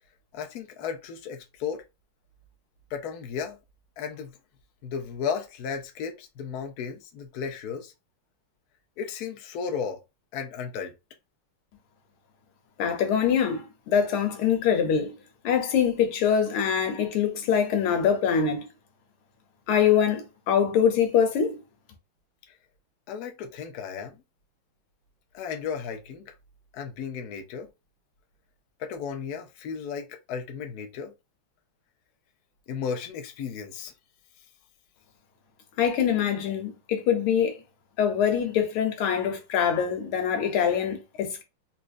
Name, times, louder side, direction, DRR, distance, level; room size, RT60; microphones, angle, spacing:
voice 1, 0.3-1.8 2.9-3.6 4.0-4.3 4.8-7.9 9.0-10.0 10.3-10.9 23.1-24.2 25.3-26.3 26.7-27.7 28.8-31.1 32.7-33.9, left 6 dB, 65° left, 1.0 m, -34 dB
voice 2, 12.8-15.2 15.4-18.7 19.7-21.6 35.8-37.6 38.0-41.4, left 8 dB, 85° left, 1.7 m, -24 dB
4.2 x 2.5 x 2.5 m
omnidirectional pair, 2.3 m